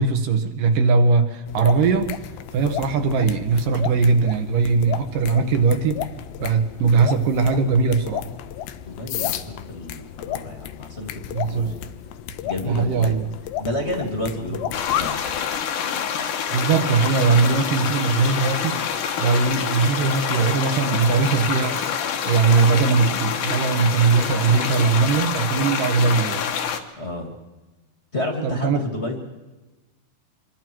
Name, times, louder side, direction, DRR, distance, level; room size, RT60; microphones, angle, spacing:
voice 1, 0.0-2.1 2.5-6.0 6.4-8.2 11.3-11.7 12.7-13.2 16.5-18.8 19.2-21.8 22.3-26.5 28.4-28.8, right 4 dB, 65° right, 7 dB, 2.4 m, -20 dB
sound 1, 1.5-15.4, left 11 dB, 80° left, 3.0 m, -33 dB
voice 2, 8.8-11.1 11.4-11.8 12.4-13.2 13.6-15.2 27.0-27.3 28.1-29.2, left 1 dB, 25° left, 3 dB, 1.6 m, -30 dB
sound 2, 14.7-26.8, left 7 dB, 65° left, 2.2 m, -26 dB
26.0 x 23.0 x 4.7 m, 1.1 s
omnidirectional pair, 5.2 m